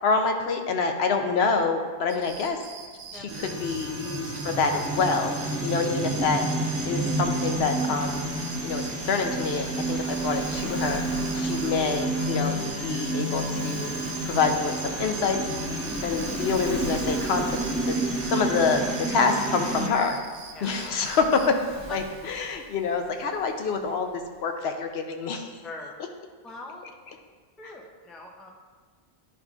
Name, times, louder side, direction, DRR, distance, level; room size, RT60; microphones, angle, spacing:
voice 1, 0.0-2.6 3.1-6.4 6.8-8.3 8.6-11.0 11.3-12.6 12.8-13.9 14.3-15.4 16.0-17.5 17.9-18.0 18.3-18.8 19.1-20.2 20.6-21.4 21.9-24.1 24.4-25.6, left 4 dB, 70° left, 5 dB, 0.9 m, -26 dB
sound 1, 2.1-21.5, right 5 dB, 80° right, 0.9 m, -44 dB
sound 2, 3.3-19.9, right 2 dB, 15° right, 0.8 m, -30 dB
Waves surf, 8.9-24.4, right 1 dB, 55° right, 1.5 m, -46 dB
voice 2, 25.6-26.0 26.4-26.9 27.6-28.5, left 2 dB, ahead, 0 dB, 0.3 m, -41 dB
9.9 x 5.0 x 2.4 m, 1.5 s
omnidirectional pair, 1.1 m